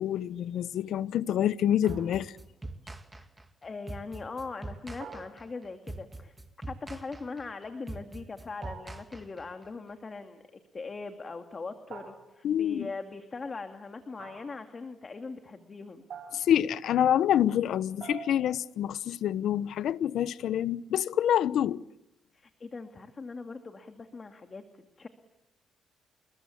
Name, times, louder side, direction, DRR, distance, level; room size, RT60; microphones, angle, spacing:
voice 1, 0.0-2.3 12.4-12.9 16.3-21.8, left 10 dB, 75° left, 0.9 m, -27 dB
sound 1, 1.8-2.5 5.0-5.9 8.6-9.2 11.9-12.6 14.2-14.7 16.1-16.7 18.0-18.6, right 6 dB, 60° right, 6.2 m, -46 dB
sound 2, 1.9-9.7, right 2 dB, 15° right, 2.4 m, -43 dB
voice 2, 3.6-6.3 6.7-16.0 22.3-25.1, left 4 dB, 35° left, 2.3 m, -41 dB
29.0 x 21.5 x 8.5 m
cardioid pair, 90°, 0 cm